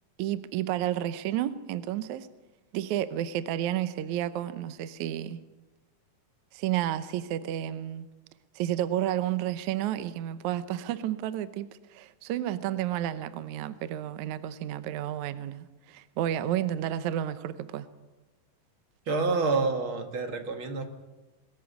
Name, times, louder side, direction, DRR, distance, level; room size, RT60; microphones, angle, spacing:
voice 1, 0.2-2.3 2.7-5.4 6.5-8.1 8.6-17.9, right 12 dB, 70° right, 13 dB, 2.0 m, -31 dB
voice 2, 19.1-20.9, right 4 dB, 45° right, 6 dB, 2.1 m, -28 dB
22.0 x 14.0 x 9.5 m, 1.1 s
omnidirectional pair, 3.9 m